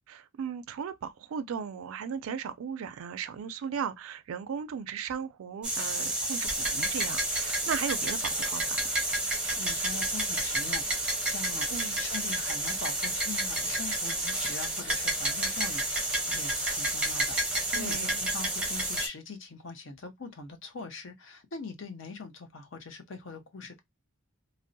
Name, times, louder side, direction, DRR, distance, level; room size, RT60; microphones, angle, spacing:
voice 1, 0.1-8.9 11.7-12.0 17.7-18.2, right 7 dB, 75° right, 0.3 m, -37 dB
sound 1, 5.6-19.1, right 1 dB, 5° right, 0.6 m, -30 dB
voice 2, 9.3-23.8, left 4 dB, 60° left, 0.6 m, -42 dB
2.6 x 2.0 x 2.6 m
head